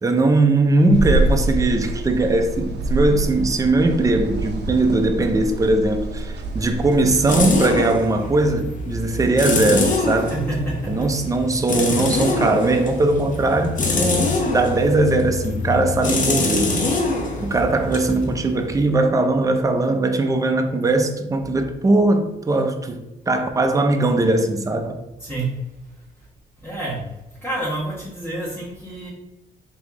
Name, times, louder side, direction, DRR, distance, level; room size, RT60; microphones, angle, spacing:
voice 1, 0.0-10.3 10.9-16.7 17.4-23.0 23.3-25.0, right 2 dB, 15° right, 0.5 m, -20 dB
sound 1, 0.9-7.7, right 2 dB, 60° right, 0.6 m, -26 dB
sound 2, 6.3-19.0, left 3 dB, 40° left, 0.7 m, -25 dB
voice 2, 10.3-11.1 25.2-25.6 26.6-27.1 27.4-29.1, right 2 dB, 5° left, 1.5 m, -28 dB
3.5 x 2.9 x 3.6 m
cardioid pair, 90°, 20 cm